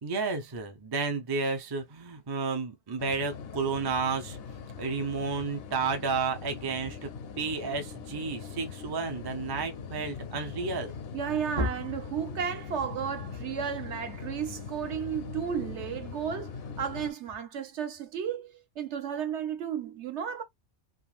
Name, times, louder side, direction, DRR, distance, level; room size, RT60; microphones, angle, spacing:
voice 1, 0.0-4.4 4.8-10.9 11.6-11.7, right 4 dB, 30° right, 0.4 m, -31 dB
sound 1, 3.0-17.1, left 6 dB, 65° left, 0.7 m, -41 dB
voice 2, 11.1-20.4, right 8 dB, 65° right, 1.0 m, -33 dB
3.6 x 2.6 x 2.4 m
omnidirectional pair, 1.3 m